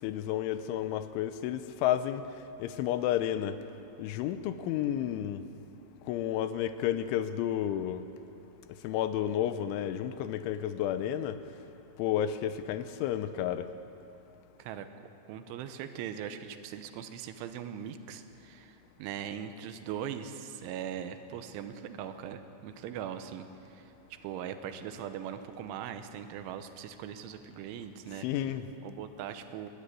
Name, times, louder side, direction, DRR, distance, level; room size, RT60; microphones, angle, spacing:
voice 1, 0.0-3.6 4.0-5.5 6.0-8.0 8.7-11.4 12.0-13.7 28.1-28.7, left 11 dB, 85° left, 11 dB, 3.1 m, -31 dB
voice 2, 14.6-14.9 15.3-28.3 28.8-29.7, right 9 dB, 85° right, 9 dB, 3.3 m, -40 dB
20.5 x 13.5 x 9.9 m, 2.9 s
omnidirectional pair, 5.5 m